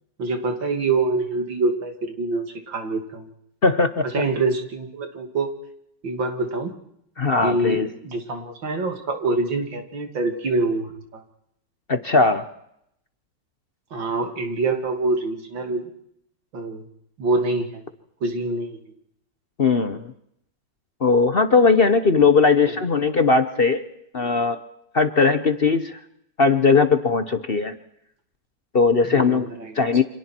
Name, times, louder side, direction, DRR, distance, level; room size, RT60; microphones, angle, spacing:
voice 1, 0.2-3.3 4.0-5.5 6.0-6.7 7.4-11.2 13.9-15.9 16.5-16.8 17.2-17.9 18.2-18.9 29.0-29.8, right 3 dB, 90° right, 5 dB, 3.3 m, -25 dB
voice 2, 3.6-4.2 7.2-7.9 11.9-12.4 19.6-20.1 21.0-23.9 24.1-24.6 24.9-26.0 26.4-27.7 28.7-30.0, left 4 dB, 40° left, 10 dB, 1.0 m, -19 dB
29.5 x 26.0 x 4.5 m, 0.75 s
omnidirectional pair, 2.0 m